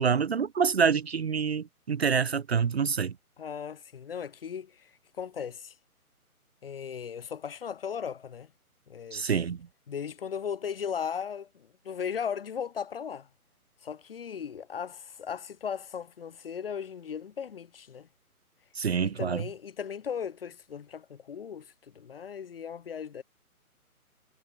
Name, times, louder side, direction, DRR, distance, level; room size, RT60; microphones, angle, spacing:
voice 1, 0.0-3.1 9.1-9.6 18.8-19.4, right 6 dB, 45° right, 0.9 m, -26 dB
voice 2, 3.4-4.9 5.2-5.7 6.6-8.5 8.9-9.3 9.9-13.3 13.8-18.1 19.0-23.2, left 7 dB, 40° left, 1.7 m, -37 dB
hypercardioid pair, 170°, 45 cm